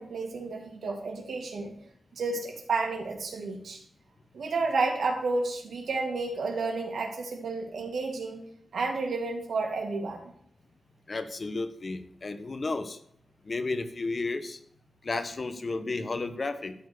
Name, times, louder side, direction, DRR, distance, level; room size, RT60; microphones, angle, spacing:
voice 1, 0.0-1.7 2.1-3.8 4.3-8.5 8.7-10.3, right 3 dB, 85° right, 1 dB, 2.5 m, -31 dB
voice 2, 11.1-13.0 13.4-14.6 15.0-16.7, left 3 dB, 45° left, 10 dB, 1.2 m, -32 dB
12.5 x 4.6 x 8.3 m, 0.68 s
wide cardioid pair, 85°, 0 cm